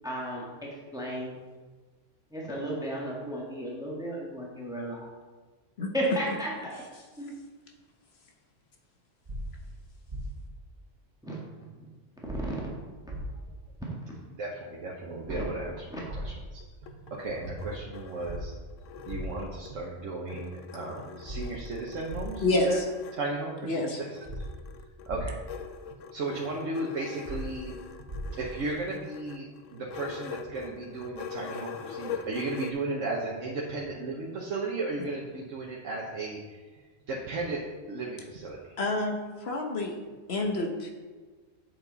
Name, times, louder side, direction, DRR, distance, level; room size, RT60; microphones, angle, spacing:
voice 1, 0.0-1.4 2.3-5.0 5.9-6.7 7.2-7.3 11.2-11.4 11.8-11.9 12.3-12.6 13.8-13.9 15.3-15.4 15.9-16.0, right 1 dB, 5° right, -4 dB, 1.6 m, -34 dB
sound 1, 9.3-9.4 10.1-10.2 12.3-12.4 13.1-13.2 15.3-15.4 16.1-16.2 18.3-18.4 19.1-19.2 21.3-21.4 22.1-22.2 24.3-24.4 25.1-25.2 27.3-27.4 28.1-28.2, equal, 40° right, 1.4 m, -37 dB
voice 2, 14.4-16.3 16.8-18.5 19.0-22.8 23.1-24.4 25.1-25.3 26.1-27.7 28.3-29.5 29.7-36.6 37.1-37.6 37.9-38.7, right 2 dB, 85° right, -3 dB, 1.4 m, -35 dB
sound 2, 16.6-19.9 20.3-23.2 24.2-32.7, left 6 dB, 85° left, 1.0 m, -43 dB
voice 3, 23.6-24.0 38.8-40.0 40.3-40.9, left 2 dB, 55° left, 2 dB, 1.3 m, -28 dB
8.2 x 7.3 x 4.0 m, 1.4 s
omnidirectional pair, 1.3 m